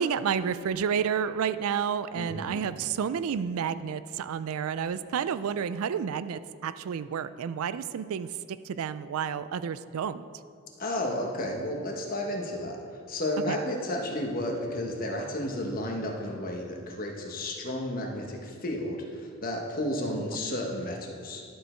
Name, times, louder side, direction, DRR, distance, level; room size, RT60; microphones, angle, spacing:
voice 1, 0.0-8.3 8.6-10.2 13.5-13.6 20.1-20.2, right 7 dB, 80° right, 14 dB, 0.4 m, -30 dB
voice 2, 2.1-2.6 10.8-12.8 13.1-21.4, left 1 dB, 40° left, 1 dB, 1.2 m, -32 dB
11.0 x 6.7 x 4.4 m, 2.2 s
head